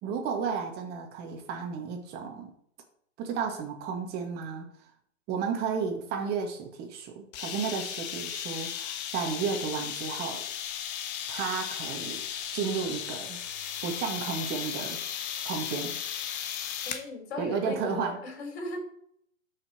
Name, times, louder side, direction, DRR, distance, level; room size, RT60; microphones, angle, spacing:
voice 1, 0.0-2.5 3.2-4.7 5.3-10.4 11.3-12.2 12.5-13.4 13.8-15.0 15.4-16.0 17.4-18.2, right 6 dB, 25° right, 3 dB, 2.1 m, -33 dB
sound 1, 7.3-17.1, left 9 dB, 30° left, 1.2 m, -36 dB
voice 2, 16.8-18.9, left 2 dB, 50° left, 3 dB, 4.7 m, -37 dB
12.5 x 6.1 x 4.6 m, 0.67 s
hypercardioid pair, 135°, 40 cm